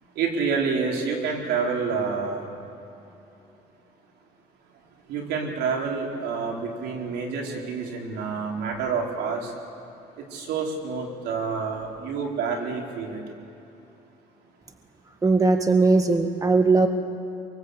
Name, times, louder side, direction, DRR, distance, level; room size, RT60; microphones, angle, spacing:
voice 1, 0.2-2.4 5.1-9.5 10.2-13.2, right 5 dB, 80° right, 0 dB, 4.4 m, -28 dB
voice 2, 15.2-16.9, right 3 dB, 20° right, 6 dB, 1.6 m, -19 dB
24.0 x 24.0 x 8.2 m, 2.9 s
cardioid pair, 110°, 17 cm